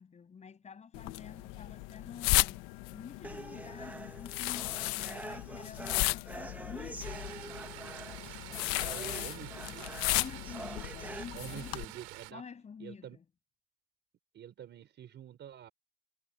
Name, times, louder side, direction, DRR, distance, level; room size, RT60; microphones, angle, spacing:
voice 1, 0.0-7.3 10.1-11.9 12.3-13.2, left 6 dB, 15° left, 7.7 m, -49 dB
sound 1, 0.9-11.8, left 19 dB, 40° left, 0.7 m, -35 dB
sound 2, 3.2-11.2, right 2 dB, 5° right, 0.7 m, -46 dB
sound 3, 7.0-12.3, right 22 dB, 50° right, 2.8 m, -48 dB
voice 2, 8.8-10.0 11.3-12.4 12.8-13.2 14.3-15.7, right 10 dB, 25° right, 5.0 m, -47 dB
cardioid pair, 180°, 42 cm